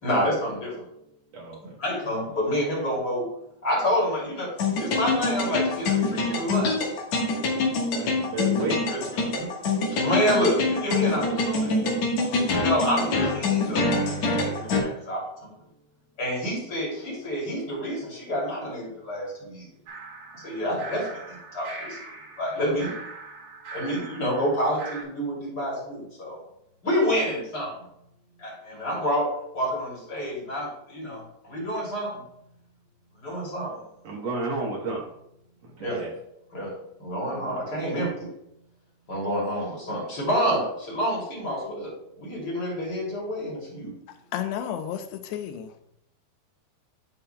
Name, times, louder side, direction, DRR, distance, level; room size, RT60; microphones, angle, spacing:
voice 1, 0.0-0.8 1.8-3.3 3.6-4.5 4.8-6.7 8.9-9.5 9.9-11.9 12.5-13.9 14.4-15.5 16.2-19.7 20.3-22.0 22.4-22.9 23.7-26.4 26.8-27.7 28.4-29.3 29.5-32.2 33.2-33.8 35.8-36.0 36.5-36.7 37.0-38.3 39.1-43.9, equal, 25° left, 2.7 m, -28 dB
voice 2, 1.3-1.8 7.9-8.9 20.6-20.7 34.0-35.1 35.6-36.1, right 2 dB, 80° right, 1.5 m, -32 dB
sound 1, 4.6-14.8, left 3 dB, 60° left, 1.9 m, -25 dB
sound 2, 19.9-25.0, right 4 dB, 65° right, 2.6 m, -41 dB
voice 3, 44.1-45.8, left 9 dB, 85° left, 2.7 m, -32 dB
11.5 x 5.6 x 2.2 m
omnidirectional pair, 4.8 m